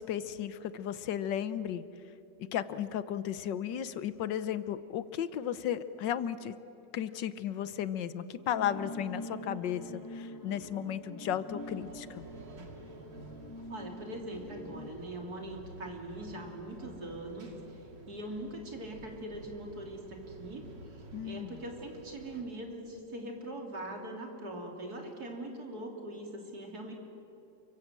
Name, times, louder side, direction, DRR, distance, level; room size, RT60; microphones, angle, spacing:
voice 1, 0.0-1.8 2.5-6.5 6.9-12.2 21.1-21.6, left 10 dB, 85° left, 14 dB, 1.5 m, -34 dB
sound 1, 8.5-14.9, left 1 dB, 10° left, 1.6 m, -45 dB
sound 2, 11.6-22.4, right 3 dB, 75° right, 2.8 m, -51 dB
voice 2, 13.7-17.8 18.1-20.6 20.9-26.9, right 1 dB, 60° right, 1 dB, 3.6 m, -42 dB
29.0 x 24.5 x 7.5 m, 3.0 s
omnidirectional pair, 1.9 m